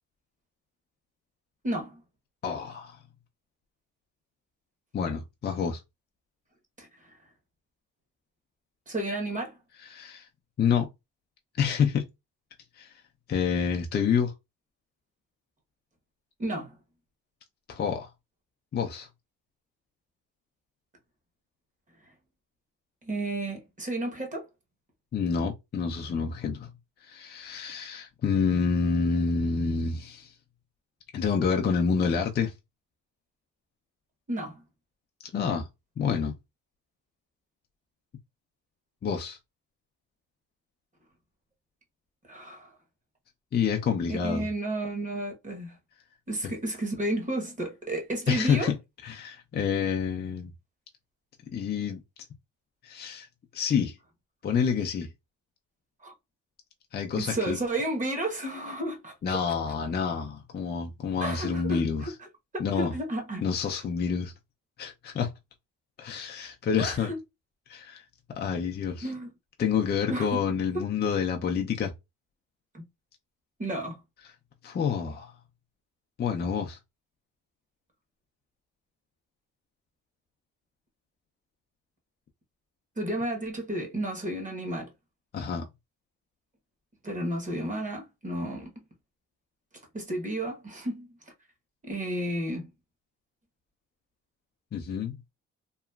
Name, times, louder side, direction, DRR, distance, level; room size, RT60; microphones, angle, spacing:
voice 1, 1.6-2.0 6.8-6.9 8.9-9.5 16.4-16.8 23.0-24.4 34.3-34.5 42.3-42.7 44.1-45.7 46.3-48.7 56.0-56.1 57.2-59.4 61.2-62.1 62.5-63.4 66.8-67.2 69.0-69.3 70.1-70.4 72.7-72.8 73.6-74.0 83.0-84.9 87.0-88.7 89.9-91.1 91.8-92.7, right 1 dB, 25° right, 1.0 m, -32 dB
voice 2, 2.4-3.0 4.9-5.8 9.8-10.3 10.6-10.9 11.6-12.1 12.8-12.9 13.3-14.3 17.7-18.1 18.7-19.1 25.1-26.7 27.0-30.3 31.1-32.5 35.3-35.7 36.0-36.3 39.0-39.4 43.5-44.5 46.4-46.5 48.3-48.8 49.0-50.5 51.5-52.0 52.8-53.3 53.5-54.0 54.4-55.1 56.9-57.6 59.2-62.1 62.6-62.9 63.4-64.3 64.8-65.3 66.0-67.1 67.7-68.0 68.4-69.1 69.6-71.9 74.6-75.3 76.2-76.8 85.3-85.7 94.7-95.2, left 6 dB, 35° left, 0.5 m, -28 dB
2.9 x 2.3 x 2.3 m
cardioid pair, 90°, 30 cm